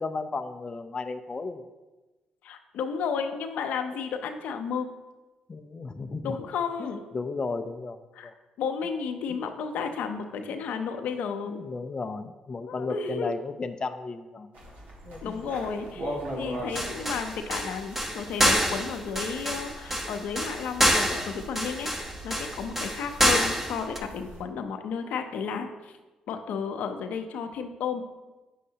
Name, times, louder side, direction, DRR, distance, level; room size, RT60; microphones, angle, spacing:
voice 1, 0.0-1.6 5.5-6.4 6.8-8.3 11.5-14.5 15.1-15.4, left 3 dB, 35° left, 7 dB, 0.4 m, -34 dB
voice 2, 2.4-4.9 6.2-7.1 8.1-8.3 8.6-11.6 12.7-13.3 15.2-21.9 22.2-25.9 26.3-28.0, left 6 dB, 75° left, 6 dB, 0.6 m, -33 dB
sound 1, 14.5-24.4, right 1 dB, 75° right, 1.8 m, -41 dB
sound 2, 16.7-24.0, equal, 15° right, 1.1 m, -26 dB
8.3 x 6.4 x 2.8 m, 1.1 s
supercardioid pair, 60°, 3 cm